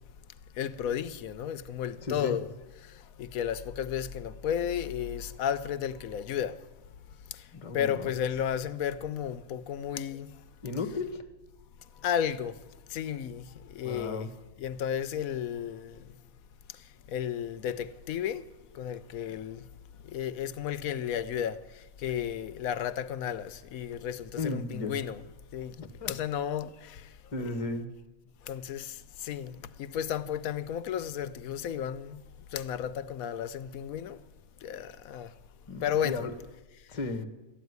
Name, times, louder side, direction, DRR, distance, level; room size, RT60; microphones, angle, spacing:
voice 1, 0.6-2.5 3.2-6.5 7.7-10.3 12.0-12.5 12.9-13.4 13.8-14.3 14.6-16.0 17.1-18.4 18.8-19.6 20.1-21.5 22.0-25.2 25.5-25.7 26.1-26.7 27.4-27.5 28.5-28.9 29.2-29.5 29.8-32.2 32.5-34.2 34.6-35.3 35.8-36.2, left 9 dB, 75° left, 1.1 m, -33 dB
voice 2, 2.0-2.4 7.5-8.1 10.6-11.2 13.8-14.3 24.4-25.0 25.8-26.1 27.3-27.9 35.7-36.3 36.9-37.3, left 3 dB, 25° left, 1.0 m, -34 dB
13.0 x 9.4 x 9.5 m
omnidirectional pair, 1.5 m